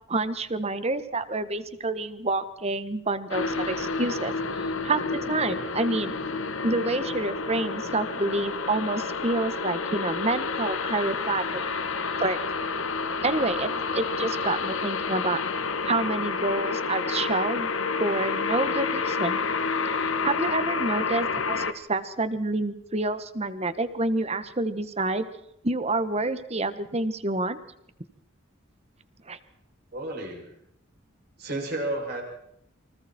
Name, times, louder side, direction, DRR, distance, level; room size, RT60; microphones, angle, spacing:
voice 1, 0.1-4.3 4.8-6.1 6.6-11.6 12.2-12.4 13.2-15.4 15.8-17.7 18.0-19.4 20.2-25.3 25.6-27.6 29.3-29.4, right 2 dB, 30° right, 12 dB, 1.5 m, -28 dB
sound 1, 3.3-21.7, left 4 dB, 85° left, 1.6 m, -29 dB
voice 2, 29.9-30.5 31.4-32.2, right 1 dB, 50° right, 1 dB, 7.2 m, -31 dB
29.0 x 25.0 x 4.5 m, 0.77 s
head